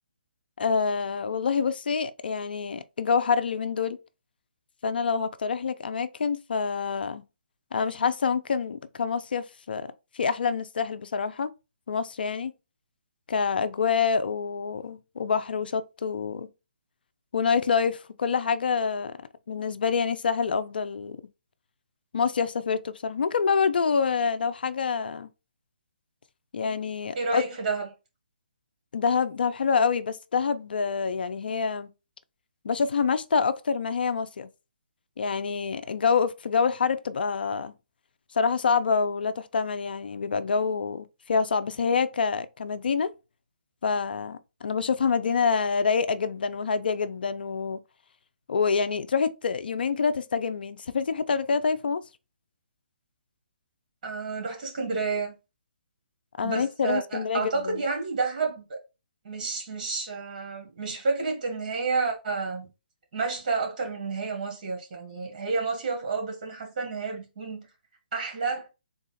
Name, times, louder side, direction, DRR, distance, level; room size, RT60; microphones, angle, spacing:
voice 1, 0.6-4.0 4.8-7.2 7.7-11.5 11.9-12.5 13.3-16.5 17.3-19.1 19.5-21.2 22.1-25.3 26.5-27.4 28.9-31.9 32.6-34.5 35.2-37.7 38.3-43.1 43.8-47.8 48.5-52.0 56.4-57.8, left 5 dB, 70° left, 0.4 m, -26 dB
voice 2, 27.1-27.9 54.0-55.3 56.4-58.8 59.2-62.7 63.1-67.7 68.1-68.7, right 4 dB, 50° right, 1.7 m, -30 dB
3.8 x 2.4 x 4.0 m
hypercardioid pair, 155°, 5 cm